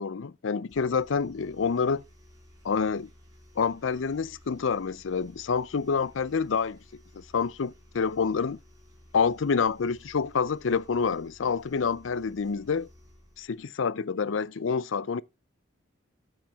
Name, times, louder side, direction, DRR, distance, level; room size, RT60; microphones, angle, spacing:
voice 1, 0.0-2.0 2.6-3.1 3.6-6.8 7.1-8.6 9.1-12.9 13.4-15.2, left 5 dB, 75° left, 0.5 m, -27 dB
sound 1, 0.7-13.6, equal, 20° right, 4.5 m, -55 dB
13.0 x 7.3 x 3.5 m
head